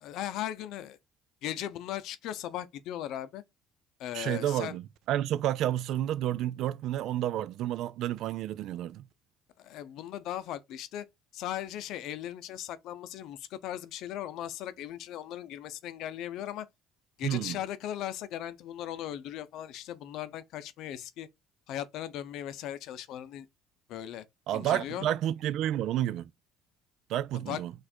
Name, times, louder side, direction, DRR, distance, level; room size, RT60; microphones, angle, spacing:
voice 1, 0.0-1.0 1.4-3.4 4.0-4.8 9.6-11.1 11.3-16.7 17.2-21.3 21.7-23.5 23.9-24.3 24.5-25.1 27.3-27.6, left 11 dB, 70° left, 0.6 m, -38 dB
voice 2, 4.1-9.0 17.2-17.6 24.5-26.3 27.1-27.7, right 12 dB, 65° right, 0.3 m, -30 dB
4.4 x 2.5 x 4.3 m
supercardioid pair, 100°, 0 cm